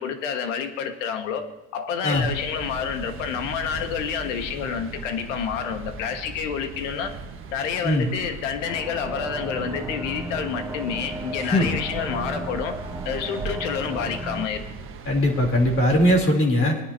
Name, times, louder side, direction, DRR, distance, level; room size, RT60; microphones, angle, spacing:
voice 1, 0.0-7.1 7.5-12.8 13.0-14.6, left 7 dB, 80° left, 7 dB, 1.5 m, -29 dB
sound 1, 2.1-16.2, right 4 dB, 35° right, 1.3 m, -38 dB
sound 2, 8.6-14.5, right 1 dB, 10° right, 0.5 m, -35 dB
sound 3, 10.9-12.6, left 2 dB, 15° left, 1.4 m, -28 dB
voice 2, 15.0-16.8, equal, 35° left, 0 dB, 3.3 m, -20 dB
21.5 x 9.9 x 2.8 m, 0.91 s
supercardioid pair, 115°, 37 cm